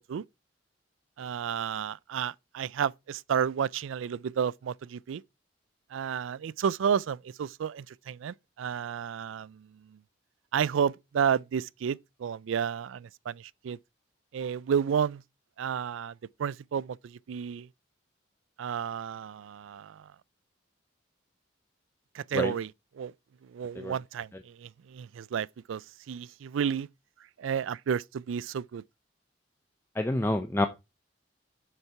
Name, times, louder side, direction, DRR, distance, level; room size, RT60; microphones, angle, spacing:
voice 1, 1.2-5.2 5.9-10.0 10.5-13.8 14.3-15.2 15.6-17.7 18.6-20.1 22.1-22.7 23.0-23.1 23.4-26.9 27.4-28.8, right 7 dB, 90° right, 0.3 m, -31 dB
voice 2, 30.0-30.7, left 1 dB, 10° left, 0.5 m, -27 dB
7.2 x 6.7 x 4.5 m
head